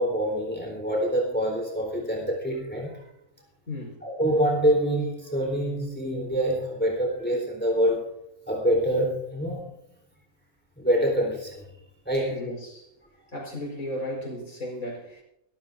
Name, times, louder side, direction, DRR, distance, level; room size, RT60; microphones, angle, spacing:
voice 1, 0.0-3.1 4.0-8.1 8.5-9.7 10.8-11.6 12.1-12.4, equal, 5° left, -1 dB, 3.9 m, -26 dB
voice 2, 3.7-4.0 12.3-12.9 13.3-15.2, left 1 dB, 80° left, -1 dB, 5.1 m, -35 dB
23.5 x 13.0 x 2.6 m, 0.77 s
omnidirectional pair, 1.4 m